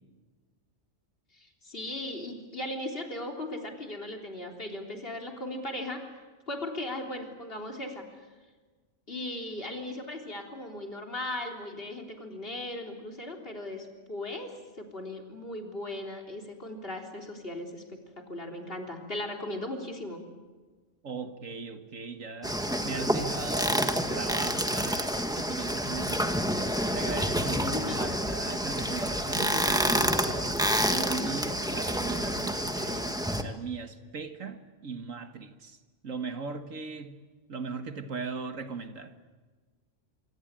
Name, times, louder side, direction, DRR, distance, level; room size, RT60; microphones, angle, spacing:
voice 1, 1.3-6.0 6.5-8.1 9.1-20.2 27.4-28.0, left 1 dB, 45° left, 3.8 m, -37 dB
voice 2, 21.0-26.5 26.9-35.8 36.0-37.2 37.5-39.1, right 4 dB, 90° right, 2.1 m, -38 dB
sound 1, 22.4-33.4, equal, 5° right, 1.5 m, -28 dB
26.0 x 25.0 x 8.9 m
omnidirectional pair, 1.3 m